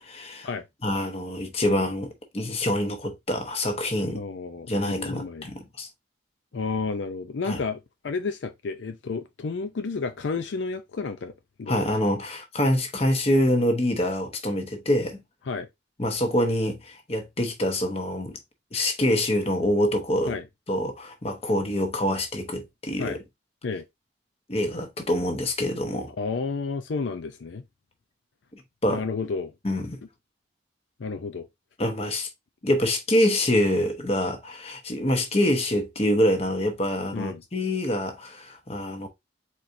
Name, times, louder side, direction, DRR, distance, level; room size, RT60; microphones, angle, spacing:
voice 1, 0.0-0.5 0.8-4.2 4.7-5.9 7.5-7.6 11.7-15.2 16.0-18.4 18.7-20.4 20.7-23.2 24.5-26.1 28.5-29.0 29.6-30.0 31.8-32.3 32.6-39.1, left 1 dB, 30° left, 1.0 m, -25 dB
voice 2, 4.1-5.5 6.5-11.3 11.6-11.8 15.5-15.7 20.3-20.4 23.0-23.2 23.6-23.8 26.2-27.6 28.9-29.5 31.0-31.5 37.1-37.4, left 4 dB, 75° left, 0.5 m, -31 dB
4.5 x 4.2 x 2.6 m
head